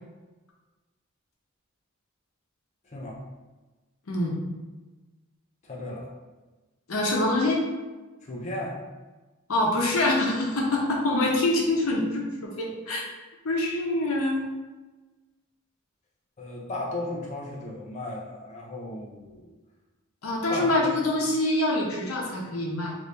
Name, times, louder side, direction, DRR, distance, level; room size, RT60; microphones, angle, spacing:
voice 1, 2.8-3.2 5.6-6.1 8.2-8.8 16.4-19.5 20.5-20.9, left 2 dB, 35° left, -3 dB, 0.4 m, -35 dB
voice 2, 6.9-7.6 9.5-13.0 13.4-14.4 20.2-22.9, left 2 dB, 80° left, -2 dB, 0.7 m, -25 dB
3.1 x 2.6 x 3.2 m, 1.2 s
head